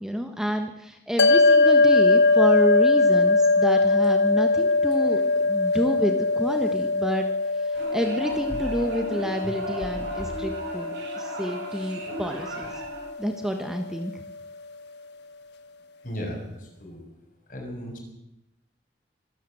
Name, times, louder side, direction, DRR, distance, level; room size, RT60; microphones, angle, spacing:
voice 1, 0.0-7.3 7.6-10.9 11.2-12.8 13.2-14.1, equal, 5° right, 5 dB, 1.3 m, -29 dB
sound 1, 1.2-13.7, left 3 dB, 80° left, 1.5 m, -22 dB
sound 2, 7.7-13.1, right 1 dB, 85° right, 7.8 m, -36 dB
voice 2, 16.0-17.0 17.5-18.0, equal, 50° left, 1 dB, 6.7 m, -35 dB
24.5 x 13.5 x 7.8 m, 0.85 s
head